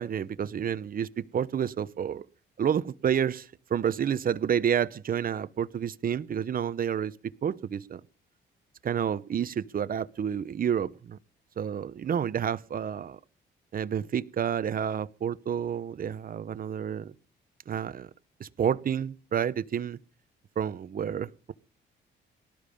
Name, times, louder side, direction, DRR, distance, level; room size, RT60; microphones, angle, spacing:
voice 1, 0.0-2.2 2.6-7.1 7.4-8.0 8.8-11.2 11.6-13.2 13.7-17.1 17.7-18.1 18.4-20.0 20.6-21.5, right 8 dB, 45° right, 0.9 m, -29 dB
18.5 x 12.0 x 5.4 m
cardioid pair, 90°, 20 cm